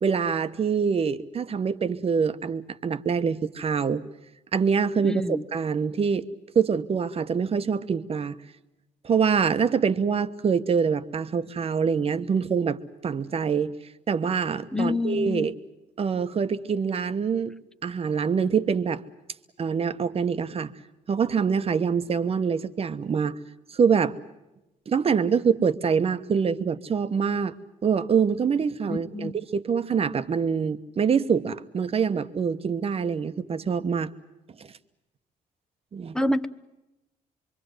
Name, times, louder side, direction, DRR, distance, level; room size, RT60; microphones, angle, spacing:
voice 1, 0.0-4.0 4.5-6.3 6.5-8.4 9.0-13.7 14.1-15.5 16.0-17.5 17.8-19.0 19.6-20.7 21.1-23.4 23.7-24.2 24.9-27.5 27.8-34.1 34.6-34.7 35.9-36.2, right 6 dB, 35° right, 11 dB, 1.2 m, -25 dB
voice 2, 5.0-5.4 14.7-15.5 28.9-29.4 36.1-36.5, left 2 dB, 5° left, 10 dB, 0.9 m, -27 dB
25.5 x 24.0 x 8.0 m, 0.97 s
cardioid pair, 110°, 17 cm